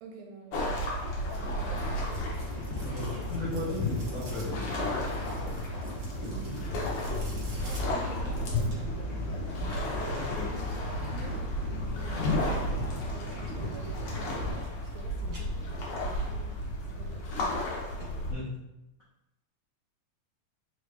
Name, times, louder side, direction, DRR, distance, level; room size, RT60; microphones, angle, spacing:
voice 1, 0.0-1.9 6.2-6.7 7.6-9.0 10.6-11.4 12.0-14.1 14.5-17.3, right 6 dB, 80° right, 2 dB, 1.6 m, -48 dB
sound 1, 0.5-18.3, equal, 65° left, 1.6 m, -34 dB
sound 2, 1.3-9.1 9.6-11.4 13.3-13.8 14.1-14.9 15.2-16.1 16.5-16.6 17.2-17.3 17.6-17.7 18.0-18.1 18.5-18.6, right 2 dB, 60° right, 1.0 m, -52 dB
sound 3, 1.7-14.5, left 3 dB, 45° left, 1.2 m, -37 dB
voice 2, 2.7-4.6 10.1-10.5 18.3-18.5, left 2 dB, 85° left, -10 dB, 0.7 m, -36 dB
4.8 x 2.6 x 3.4 m, 0.91 s
omnidirectional pair, 3.4 m